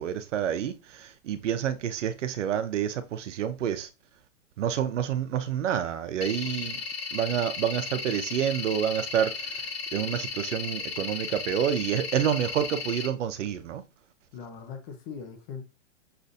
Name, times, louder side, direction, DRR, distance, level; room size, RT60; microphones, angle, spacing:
voice 1, 0.0-3.9 4.6-6.8 7.1-9.7 9.9-13.8, right 9 dB, 75° right, 0.7 m, -28 dB
sound 1, 6.2-13.1, left 5 dB, 55° left, 1.0 m, -35 dB
voice 2, 6.4-6.8 14.3-15.6, left 6 dB, 25° left, 0.6 m, -41 dB
6.7 x 2.5 x 2.6 m
hypercardioid pair, 145°, 37 cm